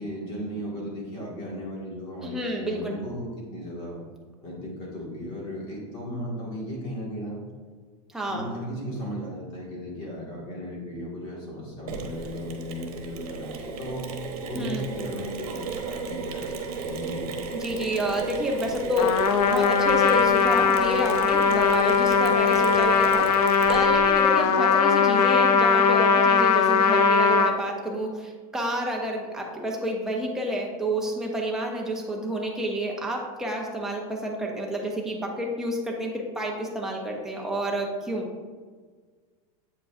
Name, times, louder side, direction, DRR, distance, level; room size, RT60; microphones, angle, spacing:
voice 1, 0.0-4.0 4.4-7.4 8.3-14.1 14.4-17.2, equal, 30° left, -4 dB, 1.6 m, -36 dB
voice 2, 2.2-3.0 8.1-8.5 14.5-14.8 17.5-38.3, equal, 5° right, -1 dB, 0.4 m, -29 dB
Mechanisms, 11.9-24.2, right 4 dB, 70° right, 0.9 m, -35 dB
Trumpet, 19.0-27.5, left 6 dB, 85° left, 0.6 m, -20 dB
8.0 x 5.0 x 2.4 m, 1.5 s
supercardioid pair, 180°, 19 cm